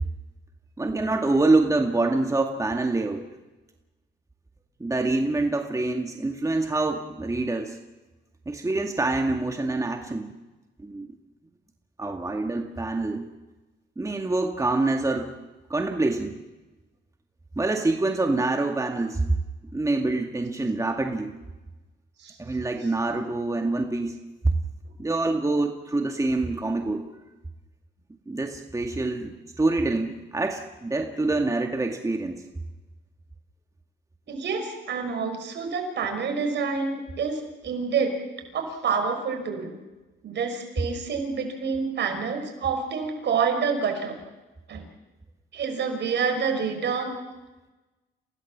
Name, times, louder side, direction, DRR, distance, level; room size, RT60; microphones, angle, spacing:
voice 1, 0.8-3.2 4.8-7.8 8.5-10.3 10.8-11.2 12.0-13.3 14.0-15.3 15.7-16.4 17.6-19.2 19.7-21.3 22.4-24.2 25.0-27.0 28.3-32.4, right 2 dB, 15° right, 3 dB, 2.1 m, -26 dB
voice 2, 34.3-38.1 38.5-39.7 40.2-44.2 44.7-44.8 45.5-47.1, right 5 dB, 65° right, 5 dB, 5.8 m, -27 dB
29.5 x 17.5 x 7.4 m, 1.1 s
cardioid pair, 90°, 20 cm